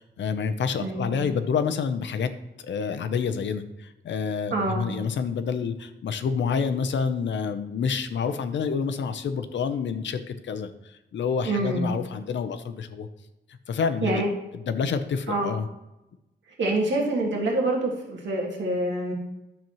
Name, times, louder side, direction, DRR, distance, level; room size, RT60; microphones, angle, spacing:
voice 1, 0.0-2.3 2.6-13.1 13.7-14.2 14.5-15.7, left 6 dB, 80° left, 10 dB, 0.7 m, -28 dB
voice 2, 0.8-1.1 4.5-4.8 11.4-11.9 14.0-14.3 15.3-15.5 16.6-19.1, right 2 dB, 85° right, -2 dB, 1.8 m, -26 dB
10.5 x 7.0 x 3.0 m, 0.94 s
wide cardioid pair, 170°, 19 cm